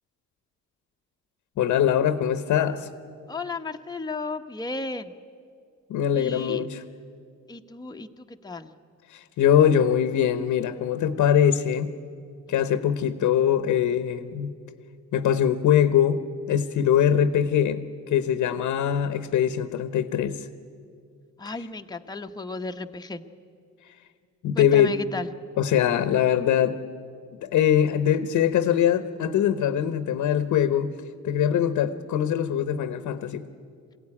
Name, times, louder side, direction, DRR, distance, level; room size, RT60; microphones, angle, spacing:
voice 1, 1.6-2.9 5.9-6.8 9.1-11.9 12.5-14.5 15.1-16.2 16.5-17.8 18.1-20.5 24.4-25.0 25.6-26.8 27.4-30.9 31.2-33.4, left 9 dB, 80° left, 11 dB, 1.0 m, -22 dB
voice 2, 3.3-5.1 6.1-6.7 7.5-8.7 21.4-23.2 24.6-25.3, left 3 dB, 15° left, 5 dB, 1.0 m, -34 dB
22.0 x 16.0 x 9.9 m, 2.3 s
cardioid pair, 90°, 30 cm